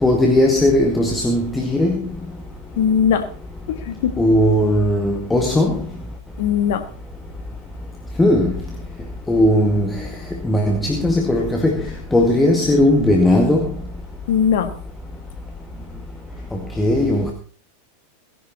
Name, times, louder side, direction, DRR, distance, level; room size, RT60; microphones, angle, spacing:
voice 1, 0.0-2.0 4.2-5.7 8.2-8.5 9.3-9.9 10.4-11.8 12.1-13.6 16.8-17.3, left 1 dB, 10° left, 2 dB, 2.0 m, -17 dB
voice 2, 2.8-3.3 3.7-4.2 6.4-6.9 14.3-14.7, left 8 dB, 55° left, 10 dB, 1.6 m, -19 dB
18.0 x 11.0 x 4.2 m, 0.43 s
figure-of-eight pair, 90°, 0 cm